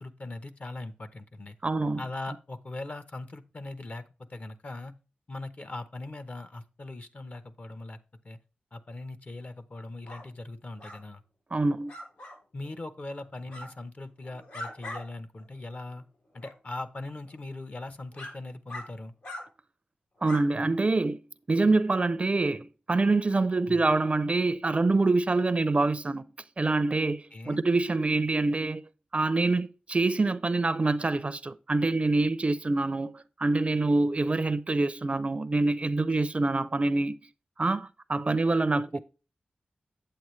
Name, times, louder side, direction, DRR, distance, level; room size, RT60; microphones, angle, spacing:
voice 1, 0.0-1.6 2.0-4.9 5.3-8.0 8.2-8.4 8.7-11.2 12.5-16.0 16.3-19.1 23.7-23.8 27.3-27.6 38.9-39.0, left 2 dB, 45° left, 0.9 m, -40 dB
voice 2, 1.6-2.0 11.5-11.9 20.2-21.2 21.5-26.3 26.6-28.8 29.1-37.2 37.6-39.0, right 3 dB, 35° right, 0.5 m, -26 dB
sound 1, 10.1-10.2 10.8-11.0 11.9-12.4 13.5-13.7 14.2-15.0 15.4-15.5 16.4-16.5 17.3-17.4 18.1-18.3 18.7-18.8 19.2-19.4 20.2-20.4, left 1 dB, 80° left, 4.4 m, -40 dB
8.5 x 8.0 x 3.2 m
cardioid pair, 55°, 3 cm